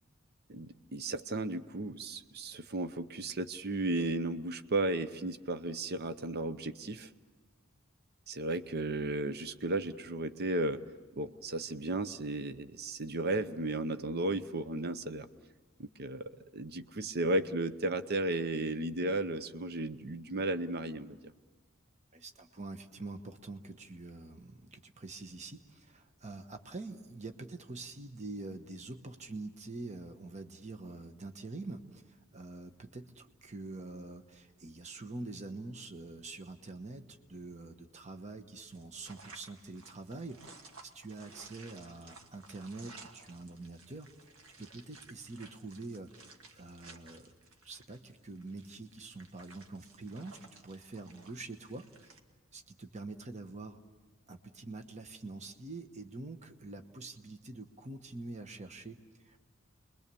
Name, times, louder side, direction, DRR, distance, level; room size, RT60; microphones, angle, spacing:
voice 1, 0.5-7.1 8.3-10.8 11.1-15.3 15.8-21.2, right 2 dB, 50° right, 11 dB, 0.8 m, -34 dB
voice 2, 22.1-46.1 46.6-47.4 47.6-51.9 52.5-53.8 54.3-59.4, right 2 dB, 35° right, 7 dB, 1.1 m, -45 dB
sound 1, 38.7-52.2, right 3 dB, 80° right, 1.7 m, -56 dB
30.0 x 22.0 x 6.9 m, 1.3 s
head